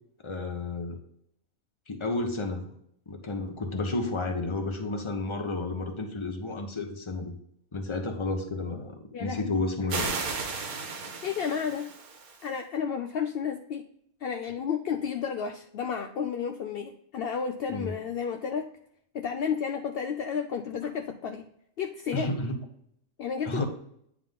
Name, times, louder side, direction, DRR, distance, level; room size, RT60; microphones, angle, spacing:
voice 1, 0.2-1.0 1.9-2.7 3.1-7.3 7.7-10.2 17.7-17.9 22.1-22.6 23.4-23.7, left 2 dB, 25° left, 5 dB, 0.8 m, -31 dB
voice 2, 9.1-9.5 11.2-11.9 12.4-13.9 14.2-18.7 19.1-21.5 21.8-22.3 23.2-23.6, left 7 dB, 70° left, 5 dB, 0.5 m, -32 dB
sound 1, 9.9-12.5, right 4 dB, 85° right, 1.5 m, -34 dB
9.2 x 3.7 x 3.6 m, 0.71 s
omnidirectional pair, 1.5 m